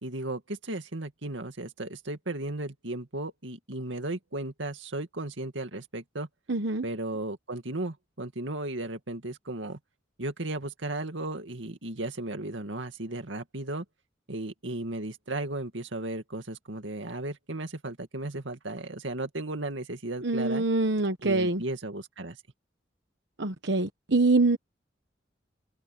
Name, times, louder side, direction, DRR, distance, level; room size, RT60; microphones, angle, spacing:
voice 1, 0.0-6.3 6.8-9.8 10.2-13.8 14.3-20.6 21.2-22.4, right 2 dB, 85° right, 2.3 m, -35 dB
voice 2, 6.5-6.8 20.2-21.6 23.4-24.6, right 3 dB, 65° right, 1.1 m, -25 dB
head